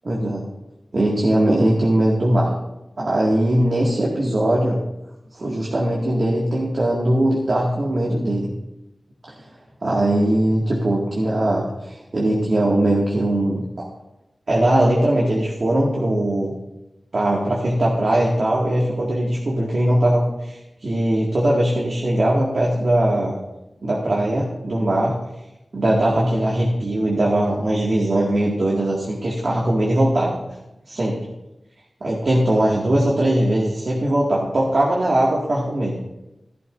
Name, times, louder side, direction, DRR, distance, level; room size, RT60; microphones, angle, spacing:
voice 1, 0.0-0.5 0.9-2.5 3.0-4.8 5.3-8.5 9.8-13.6 14.5-16.5 17.1-23.4 23.8-25.1 25.7-30.4 30.9-31.2 32.0-36.0, right 1 dB, 65° right, -4 dB, 2.1 m, -20 dB
15.0 x 13.0 x 2.7 m, 0.94 s
wide cardioid pair, 70°, 0 cm